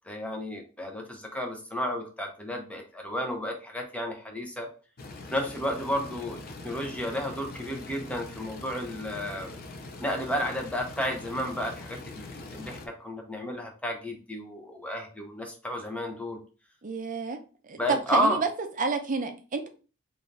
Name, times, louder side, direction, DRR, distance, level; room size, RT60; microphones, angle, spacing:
voice 1, 0.1-4.7 5.3-6.4 6.6-9.5 10.0-16.4 17.8-18.4, equal, 5° left, 2 dB, 0.8 m, -32 dB
sound 1, 5.0-12.9, left 2 dB, 50° left, 0.6 m, -43 dB
voice 2, 16.8-17.4 17.6-18.5 18.8-19.7, right 4 dB, 40° right, 6 dB, 0.6 m, -29 dB
3.8 x 2.6 x 3.2 m, 0.36 s
head